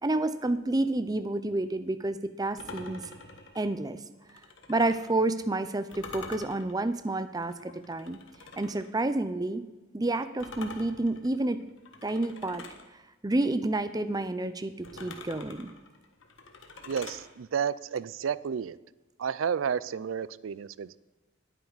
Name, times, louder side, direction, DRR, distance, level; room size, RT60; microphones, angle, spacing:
voice 1, 0.0-3.1 3.5-4.0 4.7-8.2 8.6-9.6 9.9-11.7 12.0-12.6 13.2-15.7, right 2 dB, 20° right, 12 dB, 0.6 m, -29 dB
sound 1, 2.6-5.2 5.9-8.9 10.4-12.9 14.8-17.3, left 3 dB, 75° left, 1.6 m, -46 dB
voice 2, 16.9-18.8 19.2-21.0, right 7 dB, 90° right, 18 dB, 0.4 m, -31 dB
20.0 x 9.1 x 4.1 m, 1.1 s
head